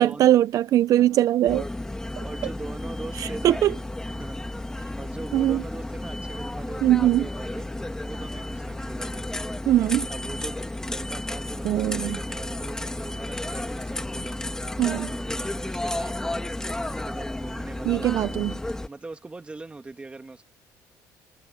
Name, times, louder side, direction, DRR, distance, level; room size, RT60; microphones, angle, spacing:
voice 1, 0.0-1.7 2.2-2.3 3.1-3.7 5.3-5.6 6.8-7.3 9.7-10.1 11.6-12.2 14.8-15.1 17.8-18.5, right 13 dB, 55° right, 0.5 m, -21 dB
sound 1, 1.5-18.9, left 1 dB, 10° left, 1.5 m, -32 dB
voice 2, 2.2-3.6 4.2-4.4 5.0-7.7 8.0-9.6 10.1-14.5 14.9-16.6 16.9-18.1 18.9-20.5, right 3 dB, 15° right, 2.0 m, -41 dB
cardioid pair, 125°, 7 cm